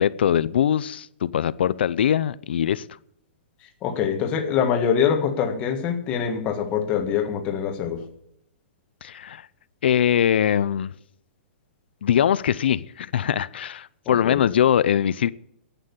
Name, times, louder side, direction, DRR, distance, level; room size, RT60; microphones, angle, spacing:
voice 1, 0.0-2.8 9.0-9.5 9.8-10.9 12.0-15.3, left 9 dB, 65° left, 17 dB, 0.5 m, -22 dB
voice 2, 3.8-8.0 14.0-14.4, left 7 dB, 20° left, 4 dB, 1.7 m, -24 dB
11.0 x 9.1 x 9.7 m, 0.75 s
hypercardioid pair, 175°, 6 cm